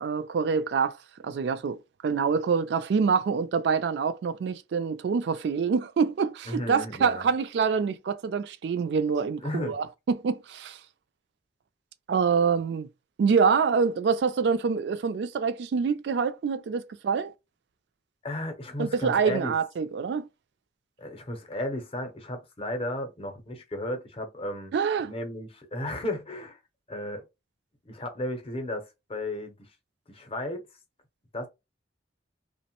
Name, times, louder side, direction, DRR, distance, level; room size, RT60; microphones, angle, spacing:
voice 1, 0.0-1.0 1.2-10.8 12.1-12.9 13.2-17.3 18.8-20.3 24.7-25.1, right 5 dB, 65° right, 0.3 m, -26 dB
voice 2, 6.5-7.3 9.4-9.8 18.2-19.5 21.0-24.7 25.0-26.6 26.9-27.2 27.8-29.7 30.1-30.7 31.3-31.5, left 1 dB, 30° left, 0.6 m, -34 dB
2.9 x 2.1 x 2.9 m
head